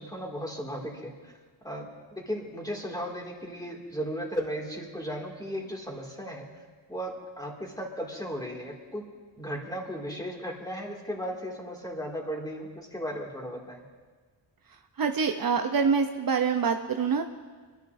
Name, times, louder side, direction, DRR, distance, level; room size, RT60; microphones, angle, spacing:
voice 1, 0.0-1.3 1.6-6.5 6.9-9.0 9.4-13.8, equal, 10° left, -1 dB, 2.3 m, -36 dB
voice 2, 15.0-17.2, right 5 dB, 50° right, 5 dB, 0.7 m, -25 dB
26.5 x 11.5 x 2.6 m, 1.4 s
wide cardioid pair, 115°, 43 cm